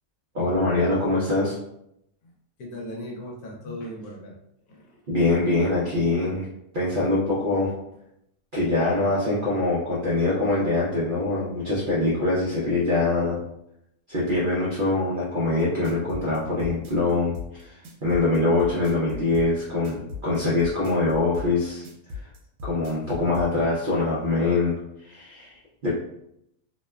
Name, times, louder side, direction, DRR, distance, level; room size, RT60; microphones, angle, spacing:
voice 1, 0.3-1.6 5.1-6.5 6.7-7.7 8.5-13.4 14.1-21.8 22.2-22.3 22.6-25.9, left 2 dB, 65° right, -7 dB, 0.5 m, -24 dB
voice 2, 2.6-4.4 4.7-5.0, equal, 75° left, -1 dB, 1.1 m, -38 dB
sound 1, 15.6-23.5, left 4 dB, 85° right, 1.1 m, -37 dB
2.8 x 2.1 x 2.2 m, 0.78 s
omnidirectional pair, 1.7 m